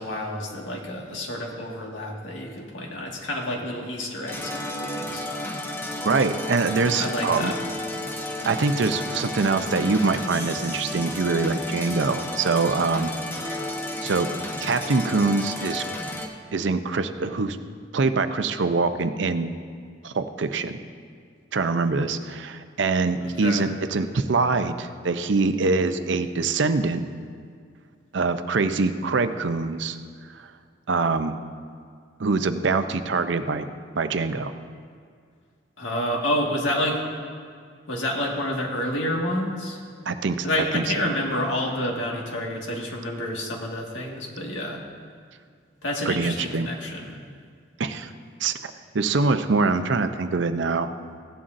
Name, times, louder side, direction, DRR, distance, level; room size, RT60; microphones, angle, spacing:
voice 1, 0.0-5.3 7.0-7.6 23.2-23.7 35.8-37.0 37.9-39.8 40.4-44.8 45.8-47.1, left 1 dB, 80° left, -1 dB, 1.8 m, -29 dB
sound 1, 4.3-16.3, left 1 dB, 10° left, 0.9 m, -32 dB
voice 2, 6.0-7.5 8.4-13.1 13.5-13.6 14.0-14.3 14.6-15.8 16.5-17.6 17.9-19.5 20.0-20.8 21.5-27.0 28.1-30.0 30.3-30.5 30.9-31.4 32.2-33.7 34.0-34.5 40.1-40.4 40.7-40.8 46.1-46.7 47.8-48.1 48.4-50.9, right 4 dB, 65° right, 9 dB, 0.6 m, -24 dB
16.5 x 11.0 x 2.6 m, 2.1 s
head